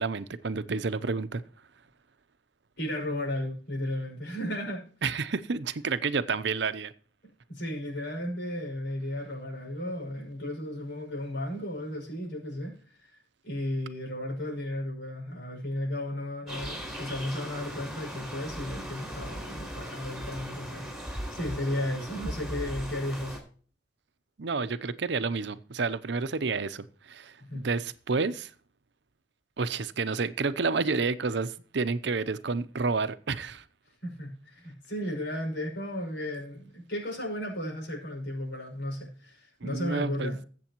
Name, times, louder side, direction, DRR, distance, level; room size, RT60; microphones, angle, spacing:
voice 1, 0.0-1.4 5.0-6.9 24.4-28.5 29.6-33.6 39.6-40.3, right 4 dB, 65° right, 0.7 m, -30 dB
voice 2, 2.8-4.8 7.5-23.4 27.5-27.7 34.0-40.4, left 1 dB, 70° left, 6.1 m, -34 dB
sound 1, 16.5-23.4, equal, 5° right, 4.4 m, -38 dB
21.5 x 7.7 x 3.0 m
head